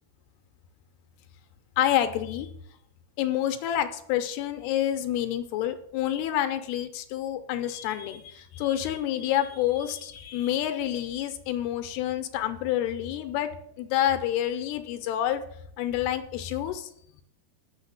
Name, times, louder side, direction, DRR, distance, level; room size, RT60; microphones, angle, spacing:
voice 1, 1.8-2.5 3.2-13.5 13.8-15.4 15.8-16.9, left 11 dB, 80° left, 8 dB, 2.6 m, -28 dB
6.5 x 6.4 x 6.9 m, 0.71 s
omnidirectional pair, 4.7 m